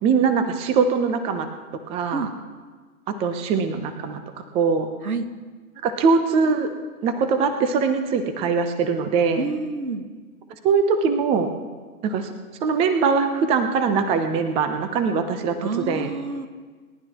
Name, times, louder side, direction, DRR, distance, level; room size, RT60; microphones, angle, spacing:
voice 1, 0.0-1.5 1.9-2.3 3.1-4.2 4.5-4.9 5.8-6.7 7.0-9.5 10.5-11.5 12.0-12.3 12.6-16.1, right 5 dB, 15° right, 8 dB, 0.7 m, -22 dB
voice 2, 9.4-10.1 15.6-16.5, right 3 dB, 80° right, 8 dB, 1.7 m, -28 dB
29.0 x 11.5 x 3.0 m, 1.5 s
hypercardioid pair, 130°, 43 cm